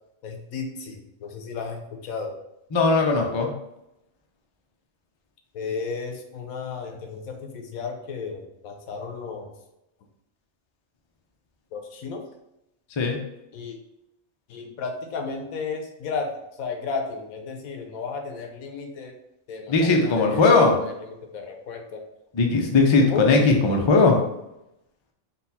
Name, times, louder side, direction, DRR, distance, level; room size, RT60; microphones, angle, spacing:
voice 1, 0.2-2.4 5.5-9.5 11.7-12.2 13.5-13.8 14.5-16.3 16.6-19.2 19.5-20.9 21.2-22.0 23.0-23.2, left 5 dB, 90° left, 3 dB, 1.1 m, -34 dB
voice 2, 2.7-3.5 13.0-13.2 19.7-20.7 22.3-24.2, left 3 dB, 50° left, 1 dB, 0.3 m, -18 dB
4.1 x 2.3 x 4.1 m, 0.85 s
omnidirectional pair, 1.4 m